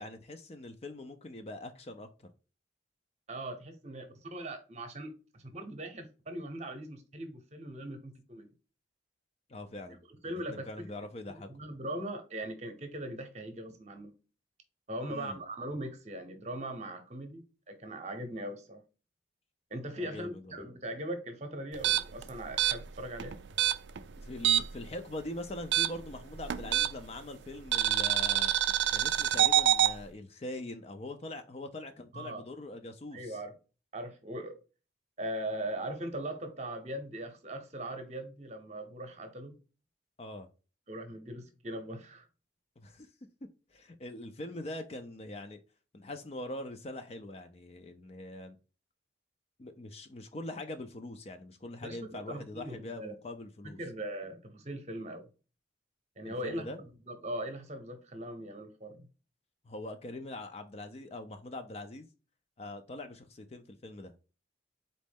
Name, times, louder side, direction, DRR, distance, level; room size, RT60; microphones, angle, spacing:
voice 1, 0.0-2.1 9.5-10.0 10.5-11.5 15.1-15.4 19.9-20.6 24.2-28.5 28.9-33.4 40.2-40.5 42.8-43.1 43.7-45.6 45.9-48.6 49.6-53.8 56.2-56.8 59.6-62.1 62.6-64.1, left 1 dB, 35° left, 0.4 m, -43 dB
voice 2, 3.3-8.5 10.2-10.8 11.5-14.1 14.9-18.8 19.7-23.4 32.1-32.4 33.1-33.5 33.9-34.6 35.2-39.6 40.9-42.3 51.8-53.2 53.6-55.2 56.2-59.1, right 1 dB, 35° right, 0.8 m, -40 dB
sound 1, 21.7-24.9 25.1-27.2 27.7-29.9, right 12 dB, 65° right, 0.4 m, -27 dB
4.1 x 3.1 x 3.5 m
head